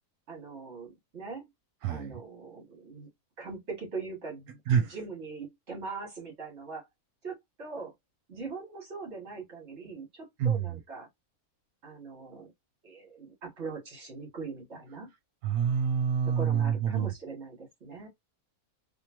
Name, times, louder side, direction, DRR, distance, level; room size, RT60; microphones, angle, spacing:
voice 1, 0.3-1.4 1.9-3.1 3.4-6.9 7.2-7.9 8.3-11.1 11.8-12.5 12.8-15.1 16.2-18.1, right 4 dB, 50° right, 2.0 m, -41 dB
voice 2, 1.8-2.2 4.7-5.0 10.4-10.8 15.4-17.1, right 7 dB, 85° right, 1.2 m, -27 dB
3.5 x 2.7 x 2.9 m
omnidirectional pair, 1.6 m